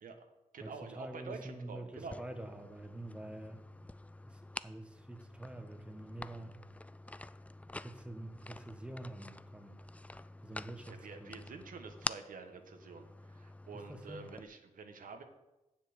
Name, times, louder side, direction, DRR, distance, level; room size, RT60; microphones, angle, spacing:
voice 1, 0.0-2.2 10.9-15.2, right 4 dB, 80° right, 6 dB, 1.2 m, -48 dB
voice 2, 0.6-3.7 4.2-6.6 7.8-9.8 10.4-11.4 13.7-14.3, right 1 dB, 10° right, 6 dB, 1.2 m, -47 dB
sound 1, 2.0-14.4, left 2 dB, 10° left, 0.3 m, -47 dB
7.5 x 7.1 x 7.9 m, 1.0 s
cardioid pair, 70°, 14 cm